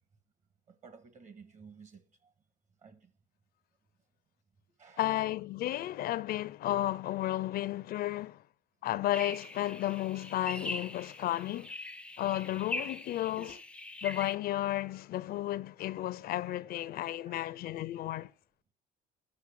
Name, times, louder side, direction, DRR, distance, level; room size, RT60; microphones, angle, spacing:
voice 1, 0.7-2.3 2.8-3.1 4.8-5.0 13.3-13.6 17.2-17.4, right 4 dB, 45° right, 1.8 m, -54 dB
voice 2, 5.0-8.4 8.8-11.7 12.2-13.5 14.0-18.3, left 14 dB, 65° left, 0.5 m, -33 dB
sound 1, 9.1-14.4, left 2 dB, 5° left, 0.4 m, -42 dB
9.7 x 6.4 x 6.3 m
cardioid pair, 110°, 17 cm